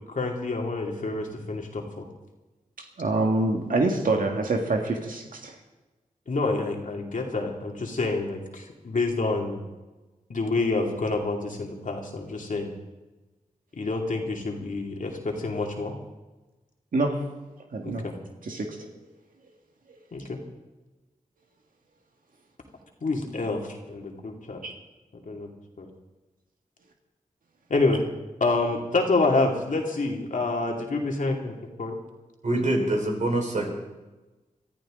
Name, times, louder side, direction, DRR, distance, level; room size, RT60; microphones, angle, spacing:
voice 1, 0.0-2.1 6.3-9.6 10.3-12.7 13.8-15.9 17.8-18.1 20.1-20.4 23.0-24.6 25.1-25.5 25.8-25.9 27.7-28.0 28.4-32.0, left 3 dB, 70° left, 1 dB, 2.5 m, -28 dB
voice 2, 3.0-5.6 16.9-17.2 17.7-18.1 18.4-18.8 24.6-24.7, right 2 dB, 80° right, 2 dB, 1.9 m, -26 dB
voice 3, 32.4-33.7, right 1 dB, 60° right, 0 dB, 4.5 m, -25 dB
22.5 x 13.5 x 3.8 m, 1.2 s
cardioid pair, 60°, 14 cm